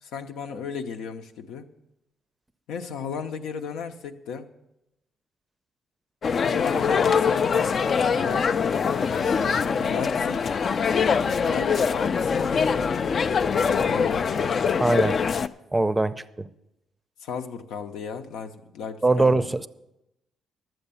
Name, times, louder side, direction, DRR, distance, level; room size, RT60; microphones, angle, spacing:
voice 1, 0.0-1.7 2.7-4.5 6.4-7.6 8.2-8.5 9.1-10.6 11.2-13.0 13.7-14.7 17.2-19.5, left 6 dB, 90° left, 6 dB, 0.8 m, -35 dB
sound 1, 6.2-15.5, left 6 dB, 50° left, 0.4 m, -23 dB
voice 2, 14.8-15.2 15.7-16.5 19.0-19.7, right 2 dB, 15° right, 14 dB, 0.5 m, -22 dB
11.5 x 7.8 x 6.9 m, 0.90 s
cardioid pair, 90°, 0 cm